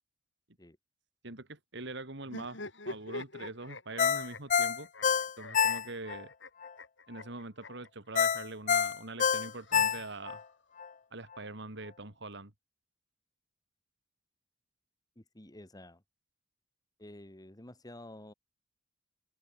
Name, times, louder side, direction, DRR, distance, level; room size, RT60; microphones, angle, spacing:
voice 1, 1.2-4.9 5.4-6.3 7.1-10.4 11.1-12.5, right 2 dB, 65° right, 3.2 m, -43 dB
sound 1, 2.2-8.4 9.4-10.5, left 2 dB, 70° left, 6.3 m, -46 dB
Ringtone, 4.0-6.2 6.6-6.7 8.2-10.4 10.8-10.9, left 7 dB, 40° left, 0.6 m, -27 dB
voice 2, 15.2-16.0 17.0-18.3, left 1 dB, 20° left, 2.2 m, -50 dB
head